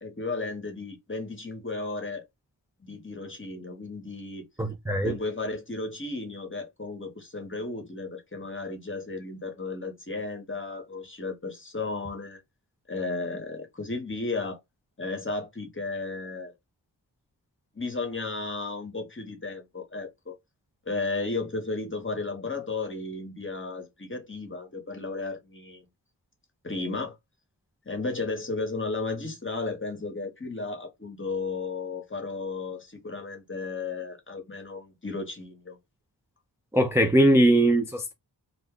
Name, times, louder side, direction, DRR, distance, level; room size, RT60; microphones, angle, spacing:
voice 1, 0.0-2.2 2.8-4.5 5.0-12.4 12.9-14.6 15.0-16.5 17.7-20.3 20.9-25.8 26.6-27.2 27.9-35.8, left 3 dB, 25° left, 0.9 m, -34 dB
voice 2, 4.6-5.2 36.7-38.1, right 1 dB, 5° right, 0.4 m, -21 dB
2.4 x 2.2 x 3.6 m
wide cardioid pair, 70°, 44 cm